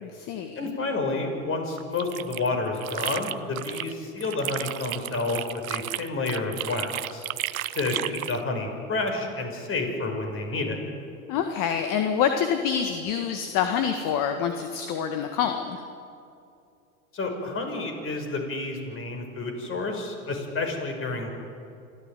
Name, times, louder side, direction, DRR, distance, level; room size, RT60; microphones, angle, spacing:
voice 1, 0.0-0.7 11.3-15.8, left 8 dB, 50° left, 6 dB, 1.8 m, -26 dB
voice 2, 0.6-7.3 7.7-10.8 17.1-21.3, left 3 dB, 30° left, 4 dB, 5.7 m, -30 dB
sound 1, 1.8-3.9 4.2-8.4, right 13 dB, 80° right, 0.9 m, -33 dB
26.5 x 14.5 x 9.3 m, 2.5 s
hypercardioid pair, 90°, 42 cm